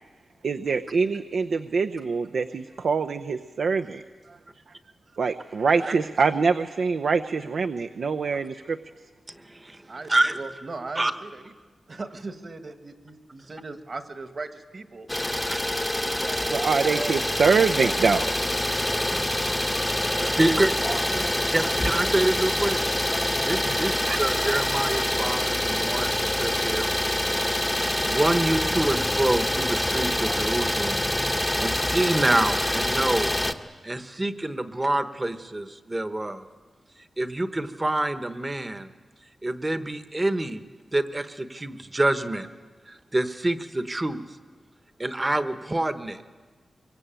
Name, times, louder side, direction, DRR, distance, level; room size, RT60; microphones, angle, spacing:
voice 1, 0.4-4.0 5.2-8.8 16.5-18.3 18.7-18.8 19.4-19.5 19.8-20.1 20.9-21.0 23.6-23.8 24.1-24.2, right 5 dB, 65° right, 6 dB, 0.7 m, -25 dB
voice 2, 9.3-10.4 10.9-11.1 15.2-16.4 18.7-18.9 19.4-20.7 21.0-21.1 21.5-22.8 23.1-26.9 28.1-31.1 31.6-33.3 33.8-36.5 37.2-38.9 39.4-40.6 40.9-42.5 42.9-44.2 45.0-46.2, right 1 dB, 15° right, 9 dB, 1.1 m, -27 dB
voice 3, 9.9-11.5 11.9-15.1 16.1-17.7 20.1-21.5 31.4-31.7, right 3 dB, 40° right, 8 dB, 1.6 m, -39 dB
Idling, 15.1-33.5, left 1 dB, 10° left, 1.0 m, -26 dB
24.0 x 24.0 x 9.0 m, 1.4 s
wide cardioid pair, 175°, 0 cm